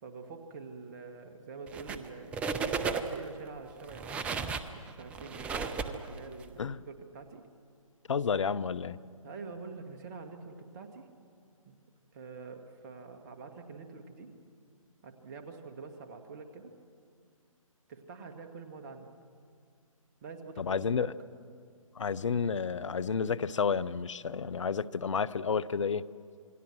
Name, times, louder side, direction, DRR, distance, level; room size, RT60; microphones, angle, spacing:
voice 1, 0.0-2.3 2.7-4.2 4.7-7.4 9.2-11.1 11.7-11.8 12.1-14.3 15.0-16.7 17.9-19.1 20.2-21.1, right 4 dB, 30° right, 6 dB, 1.9 m, -46 dB
sound 1, 1.7-2.1 2.3-3.3 3.8-6.5, right 5 dB, 5° right, 0.5 m, -34 dB
voice 2, 8.1-9.0 20.6-21.1 22.0-26.1, left 6 dB, 60° left, 18 dB, 0.7 m, -31 dB
27.5 x 21.5 x 6.2 m, 2.2 s
figure-of-eight pair, 140°, 18 cm